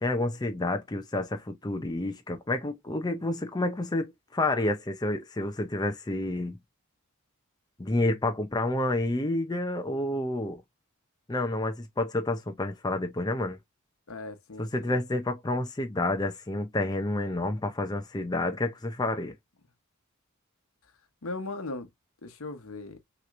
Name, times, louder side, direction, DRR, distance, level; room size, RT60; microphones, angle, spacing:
voice 1, 0.0-6.6 7.8-10.6 11.3-13.6 14.6-19.4, left 2 dB, 20° left, 0.5 m, -29 dB
voice 2, 14.1-15.0 21.2-21.9 22.2-23.0, left 2 dB, 65° left, 0.9 m, -38 dB
6.1 x 3.0 x 2.5 m
head